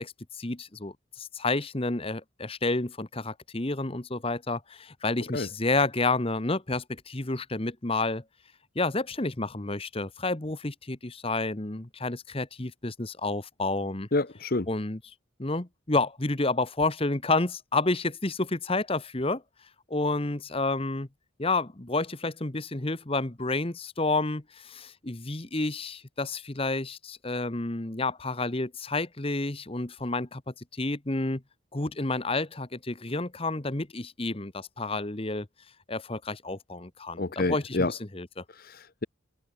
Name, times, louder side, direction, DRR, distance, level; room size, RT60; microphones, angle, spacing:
voice 1, 0.0-8.2 8.7-14.1 14.7-15.0 15.4-19.4 19.9-21.1 21.4-31.4 31.7-35.5 35.9-38.4, left 2 dB, 25° left, 1.2 m, -30 dB
voice 2, 14.1-14.7 37.2-37.9 38.6-39.0, left 2 dB, 45° left, 0.9 m, -28 dB
head